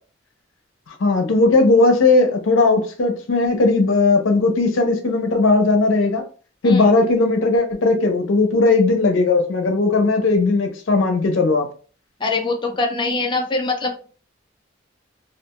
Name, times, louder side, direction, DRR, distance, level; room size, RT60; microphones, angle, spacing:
voice 1, 1.0-6.2 6.6-11.7, left 3 dB, 90° left, 4 dB, 0.6 m, -17 dB
voice 2, 12.2-13.9, left 3 dB, 25° left, 2 dB, 0.3 m, -23 dB
2.4 x 2.3 x 2.8 m, 0.39 s
head